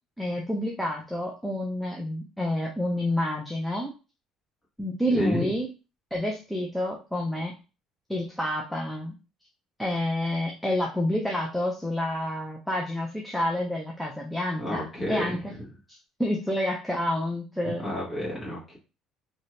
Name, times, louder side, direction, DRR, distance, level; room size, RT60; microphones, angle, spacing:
voice 1, 0.2-3.9 4.8-5.7 6.1-7.6 8.1-9.1 9.8-15.5 15.9-17.8, left 1 dB, ahead, -1 dB, 0.4 m, -29 dB
voice 2, 5.1-5.5 14.6-15.7 17.6-18.8, left 1 dB, 20° left, -5 dB, 1.5 m, -31 dB
2.7 x 2.6 x 3.1 m, 0.32 s
cardioid pair, 155°, 0 cm